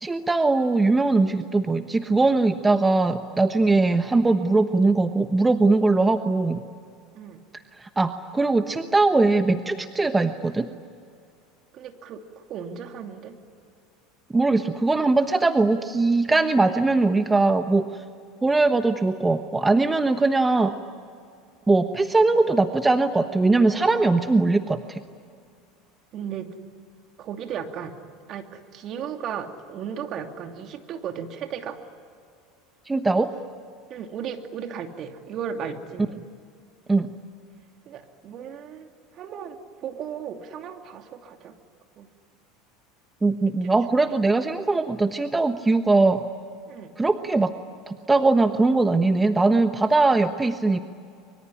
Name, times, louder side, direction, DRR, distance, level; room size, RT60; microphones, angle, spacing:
voice 1, 0.0-6.6 7.8-10.7 14.3-18.0 18.4-20.7 21.7-25.0 32.9-33.3 36.9-37.1 43.2-46.2 47.0-47.5 47.9-50.8, right 3 dB, 15° right, 9 dB, 1.2 m, -21 dB
voice 2, 11.7-12.2 12.5-13.3 26.1-26.5 27.2-27.9 28.3-31.8 33.9-36.2 37.9-38.9 39.1-39.6 39.8-41.5 42.0-42.1 43.6-43.7 46.7-46.9, right 8 dB, 50° right, 5 dB, 2.7 m, -35 dB
24.5 x 24.0 x 9.9 m, 2.3 s
hypercardioid pair, 85°, 0 cm